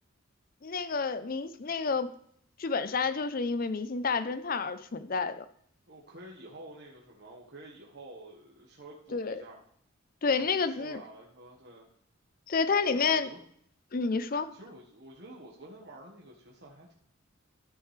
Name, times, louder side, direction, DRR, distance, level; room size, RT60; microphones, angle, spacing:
voice 1, 0.6-2.1 2.6-5.4 9.1-9.4 10.2-11.0 12.5-13.3 13.9-14.5, left 4 dB, 45° left, 13 dB, 0.5 m, -29 dB
voice 2, 5.9-9.6 10.3-11.9 12.9-13.4 14.5-16.9, right 1 dB, 55° right, -2 dB, 1.3 m, -49 dB
13.5 x 6.2 x 3.3 m, 0.64 s
head